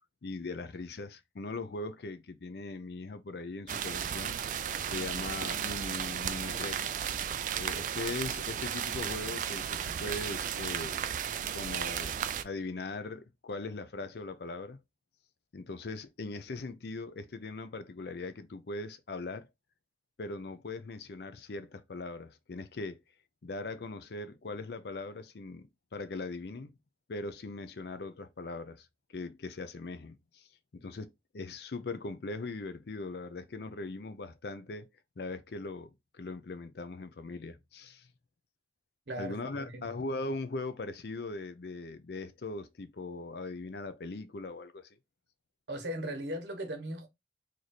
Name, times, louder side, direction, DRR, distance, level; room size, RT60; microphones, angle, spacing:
voice 1, 0.2-4.4 4.9-6.9 7.5-11.0 11.5-12.2 12.4-14.8 15.5-19.5 20.2-23.0 23.4-26.8 27.1-30.5 30.7-34.9 35.2-38.1 39.2-45.0, left 3 dB, 65° left, 0.5 m, -40 dB
sound 1, 3.7-12.4, right 8 dB, 45° right, 0.3 m, -34 dB
voice 2, 39.1-40.0 45.7-47.1, right 1 dB, 75° right, 1.1 m, -38 dB
3.1 x 2.6 x 4.1 m
head